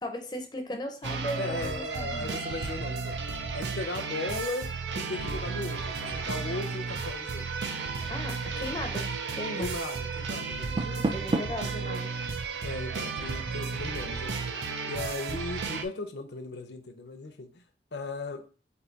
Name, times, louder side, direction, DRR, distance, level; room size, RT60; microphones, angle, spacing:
voice 1, 0.0-2.4 8.1-9.7 10.8-12.1, left 1 dB, 25° left, 4 dB, 0.6 m, -37 dB
sound 1, 1.0-15.8, right 4 dB, 90° right, 0.6 m, -33 dB
voice 2, 1.4-3.2 3.5-7.5 9.6-11.1 12.6-17.6 17.9-18.4, left 2 dB, 75° left, 7 dB, 0.7 m, -37 dB
Drum, 6.0-6.1 6.6-6.9 7.3-7.4 8.0-8.2 8.6-8.8 9.3-9.6 10.0-10.1 10.6-11.2, equal, 45° right, 2.4 m, -52 dB
Door, 10.5-11.7, right 2 dB, 25° right, 0.4 m, -30 dB
4.6 x 2.7 x 3.9 m, 0.37 s
head